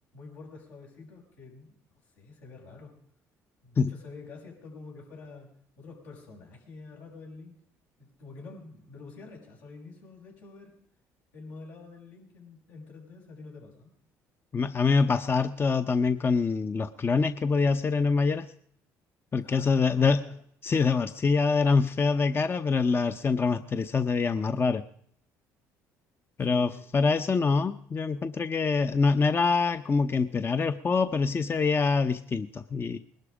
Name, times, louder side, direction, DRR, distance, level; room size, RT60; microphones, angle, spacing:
voice 1, 0.1-1.8 2.2-2.9 3.6-7.5 8.0-10.7 11.3-13.9 19.4-20.3 26.4-26.9, left 3 dB, 85° left, -2 dB, 6.1 m, -47 dB
voice 2, 14.5-18.5 19.3-20.2 20.6-24.8 26.4-33.0, left 4 dB, 30° left, 10 dB, 0.8 m, -25 dB
20.5 x 12.0 x 5.0 m, 0.65 s
supercardioid pair, 75°, 7 cm